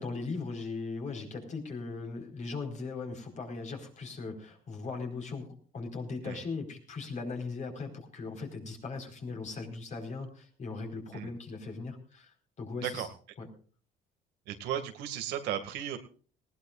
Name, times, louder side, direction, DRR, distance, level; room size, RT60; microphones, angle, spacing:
voice 1, 0.0-12.3 12.6-13.1 13.4-13.5, left 4 dB, 45° left, 3 dB, 4.5 m, -39 dB
voice 2, 14.5-16.0, right 10 dB, 90° right, 6 dB, 2.1 m, -35 dB
19.5 x 17.5 x 2.5 m, 0.41 s
cardioid pair, 110°, 17 cm